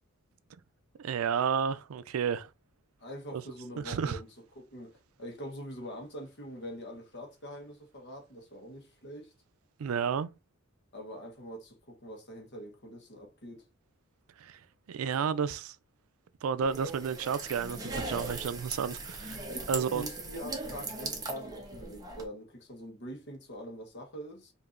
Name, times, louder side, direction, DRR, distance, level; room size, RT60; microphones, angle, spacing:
voice 1, 1.0-2.5 3.3-3.4 3.8-4.2 9.8-10.3 14.4-14.6 14.9-15.8 16.4-20.0, right 6 dB, 85° right, 0.4 m, -31 dB
voice 2, 3.0-4.3 4.5-9.3 10.9-13.7 19.5-24.5, equal, 55° left, 1.1 m, -44 dB
sound 1, 16.6-22.2, right 2 dB, 20° right, 0.9 m, -39 dB
5.0 x 2.6 x 2.5 m
head